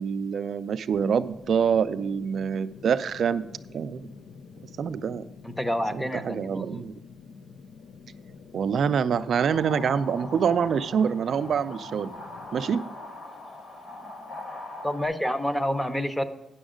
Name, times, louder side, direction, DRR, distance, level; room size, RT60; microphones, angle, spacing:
voice 1, 0.0-3.4 3.7-4.1 4.8-5.2 5.9-6.9 8.5-12.1 12.5-12.8, right 7 dB, 60° right, 13 dB, 0.4 m, -26 dB
sound 1, 0.9-12.8, left 5 dB, 80° left, 0.5 m, -47 dB
voice 2, 5.4-6.8 14.8-16.2, equal, 5° left, 10 dB, 0.6 m, -28 dB
sound 2, 9.1-15.1, left 2 dB, 55° left, 1.4 m, -41 dB
9.9 x 6.3 x 5.0 m, 0.95 s
cardioid pair, 135°, 0 cm